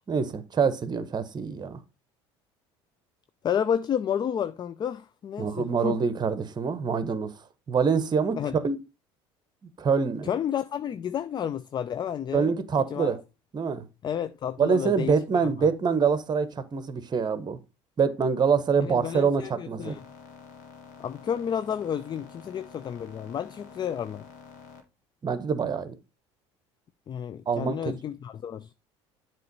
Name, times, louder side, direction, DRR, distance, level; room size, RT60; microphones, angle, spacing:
voice 1, 0.1-1.8 5.4-7.3 7.7-8.8 9.8-10.3 12.3-13.2 13.5-13.8 14.6-17.6 18.0-20.0 25.2-26.0 27.5-28.0, right 5 dB, 30° right, 0.9 m, -25 dB
voice 2, 3.4-6.0 8.4-8.6 10.2-12.5 12.9-13.1 14.0-15.1 15.4-15.5 18.8-20.0 21.0-24.3 27.1-28.7, left 8 dB, 30° left, 0.4 m, -31 dB
sound 1, 19.8-24.8, left 6 dB, 70° left, 1.4 m, -48 dB
7.6 x 3.1 x 5.3 m
hypercardioid pair, 75°, 14 cm